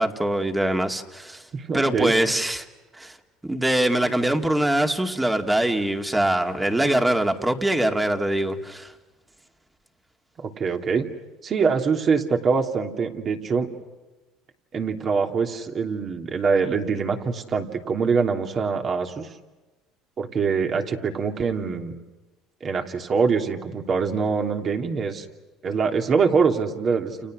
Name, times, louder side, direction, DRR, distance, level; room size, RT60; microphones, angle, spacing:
voice 1, 0.0-1.4 1.7-2.7 2.9-3.2 3.4-8.9, right 1 dB, 10° right, 5 dB, 2.4 m, -23 dB
voice 2, 1.5-2.1 10.4-11.1 11.4-13.7 14.7-19.3 20.2-21.9 22.6-25.2 25.6-27.3, right 5 dB, 40° right, 4 dB, 3.0 m, -24 dB
30.0 x 29.0 x 6.4 m, 1.2 s
supercardioid pair, 110°, 0 cm